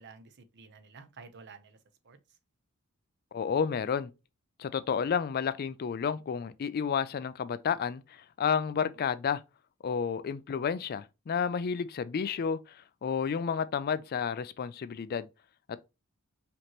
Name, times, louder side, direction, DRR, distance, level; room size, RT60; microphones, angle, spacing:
voice 1, 0.0-1.8 2.0-2.2, right 4 dB, 50° right, 0.7 m, -51 dB
voice 2, 3.3-4.1 4.6-9.4 9.8-15.3 15.7-15.8, left 6 dB, 45° left, 0.3 m, -31 dB
5.1 x 2.9 x 2.9 m
head